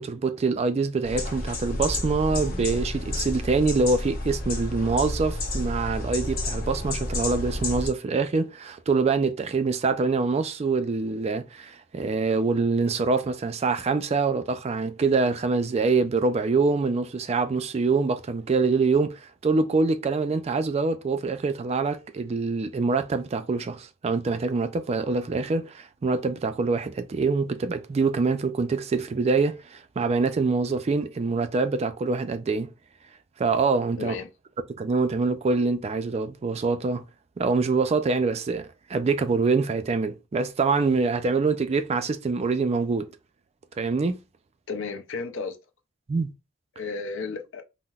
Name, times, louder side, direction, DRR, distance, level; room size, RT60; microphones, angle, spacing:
voice 1, 0.0-32.7 33.4-34.2 34.7-37.0 37.4-43.1 43.8-44.2 46.1-46.3, right 4 dB, 30° right, 0.3 m, -25 dB
sound 1, 1.0-7.9, left 2 dB, 50° left, 1.0 m, -30 dB
voice 2, 34.0-34.3 44.7-45.6 46.8-47.6, left 4 dB, 65° left, 0.5 m, -33 dB
5.5 x 2.0 x 2.3 m
head